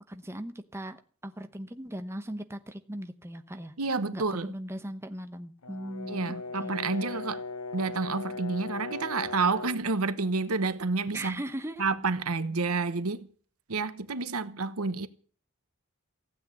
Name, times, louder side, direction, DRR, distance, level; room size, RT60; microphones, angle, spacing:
voice 1, 0.1-3.7 4.1-6.7 11.1-11.8, right 1 dB, 10° right, 0.9 m, -39 dB
voice 2, 3.8-4.5 6.1-7.4 7.7-11.4 11.8-13.3 13.7-15.1, right 4 dB, 85° right, 1.1 m, -29 dB
Brass instrument, 5.6-9.9, left 3 dB, 85° left, 0.9 m, -38 dB
15.5 x 8.6 x 8.4 m
head